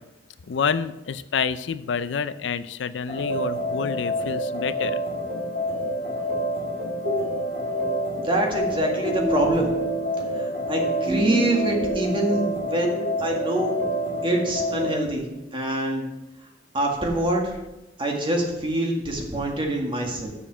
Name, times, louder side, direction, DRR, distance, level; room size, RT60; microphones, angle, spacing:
voice 1, 0.5-5.0, left 6 dB, 70° left, 14 dB, 0.4 m, -28 dB
sound 1, 3.1-15.0, equal, 55° right, 2.7 m, -27 dB
voice 2, 8.2-9.7 10.3-13.8 14.2-15.2 15.5-16.0 16.7-17.5 18.0-20.3, right 1 dB, 30° right, 1 dB, 1.8 m, -25 dB
7.0 x 6.9 x 7.3 m, 0.97 s
head